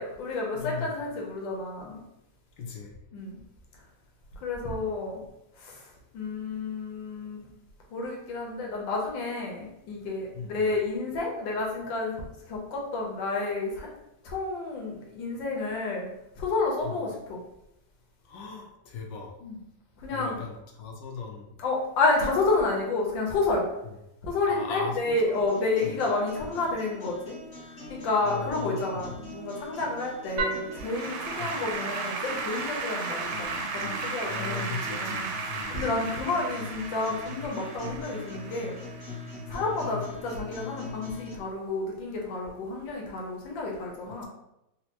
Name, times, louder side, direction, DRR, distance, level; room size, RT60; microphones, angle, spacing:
voice 1, 0.0-2.0 3.1-3.4 4.4-5.2 5.6-5.8 6.1-7.5 7.9-12.2 12.5-13.9 14.2-16.1 16.4-17.4 19.4-19.6 20.0-20.4 21.6-23.7 24.2-27.4 27.9-38.8 39.5-44.2, left 3 dB, 90° left, -1 dB, 1.5 m, -30 dB
voice 2, 0.5-0.9 2.6-2.9 10.3-10.7 16.8-17.0 18.2-19.3 20.1-21.5 23.8-24.0 24.5-25.4 25.8-26.0 28.2-29.2 31.4-31.6 34.3-36.0 39.4-40.0, left 5 dB, 75° left, 1 dB, 1.2 m, -38 dB
sound 1, 25.3-41.3, left 2 dB, 40° left, 0.9 m, -43 dB
Applause / Keyboard (musical), 30.4-39.7, right 4 dB, 75° right, 1.1 m, -34 dB
4.1 x 2.1 x 2.8 m, 0.85 s
omnidirectional pair, 2.0 m